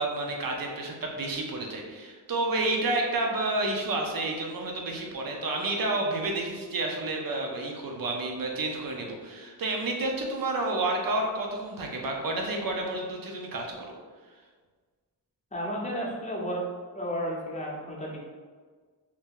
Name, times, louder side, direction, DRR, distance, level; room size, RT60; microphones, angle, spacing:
voice 1, 0.0-13.9, right 2 dB, 55° right, 1 dB, 0.7 m, -30 dB
voice 2, 15.5-16.6 16.9-18.2, equal, 15° left, -3 dB, 0.7 m, -32 dB
2.8 x 2.6 x 3.7 m, 1.5 s
wide cardioid pair, 115°, 41 cm